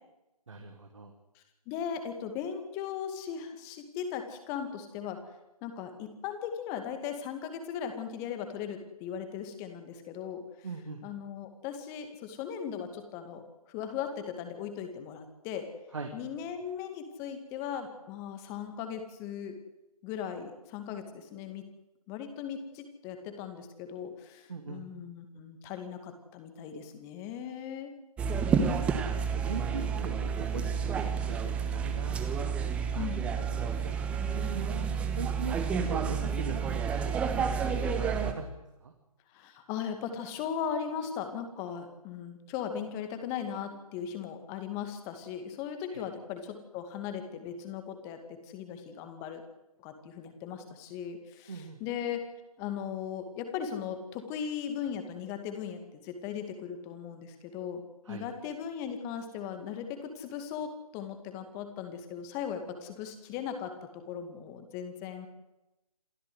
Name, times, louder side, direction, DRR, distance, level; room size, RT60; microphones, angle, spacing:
voice 1, 0.5-1.1 10.6-11.0 15.9-16.1 24.5-24.8 29.3-32.5 32.9-33.1 33.5-34.0 34.3-38.4 38.8-38.9 45.9-46.0 51.5-51.8 58.0-58.2, right 4 dB, 55° right, 4 dB, 2.8 m, -41 dB
voice 2, 1.4-5.2 5.6-10.4 11.0-13.4 13.7-15.6 16.1-19.5 20.0-21.6 22.1-28.0 29.1-29.7 32.9-33.2 39.3-49.4 49.8-52.2 52.6-57.8 58.1-65.3, left 8 dB, 15° left, 7 dB, 2.2 m, -38 dB
sound 1, 28.2-38.3, right 6 dB, 5° right, 1.0 m, -30 dB
27.5 x 15.0 x 8.0 m, 0.96 s
figure-of-eight pair, 145°, 19 cm